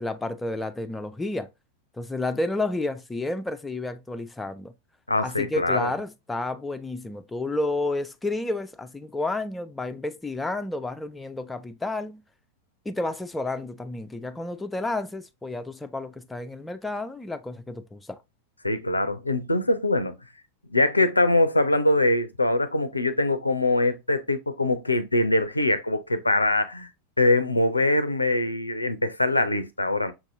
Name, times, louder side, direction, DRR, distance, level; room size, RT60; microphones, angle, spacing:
voice 1, 0.0-1.5 2.0-4.7 5.2-12.2 12.9-18.2, left 2 dB, 10° left, 0.3 m, -31 dB
voice 2, 5.1-5.9 18.6-20.2 20.7-26.9 27.2-30.1, left 2 dB, 85° left, 0.4 m, -23 dB
5.8 x 2.7 x 2.5 m
figure-of-eight pair, 90°, 0 cm